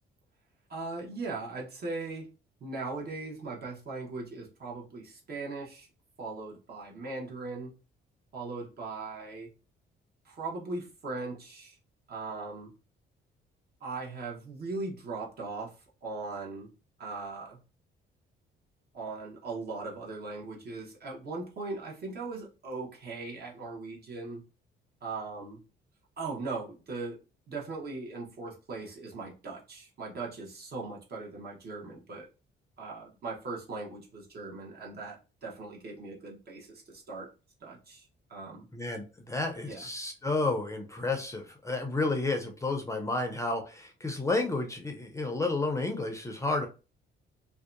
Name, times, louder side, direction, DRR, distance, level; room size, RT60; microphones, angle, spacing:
voice 1, 0.7-2.3 2.6-5.9 6.2-7.7 8.3-9.5 10.2-11.8 12.1-12.7 13.8-15.7 16.0-16.7 17.0-17.6 18.9-24.4 25.0-25.6 26.2-27.2 27.5-32.3 32.8-37.3 37.6-38.7 39.7-39.9, right 3 dB, 55° right, -2 dB, 1.0 m, -39 dB
voice 2, 38.7-46.7, left 2 dB, 15° left, 3 dB, 0.5 m, -31 dB
2.6 x 2.2 x 2.4 m, 0.32 s
cardioid pair, 90°, 20 cm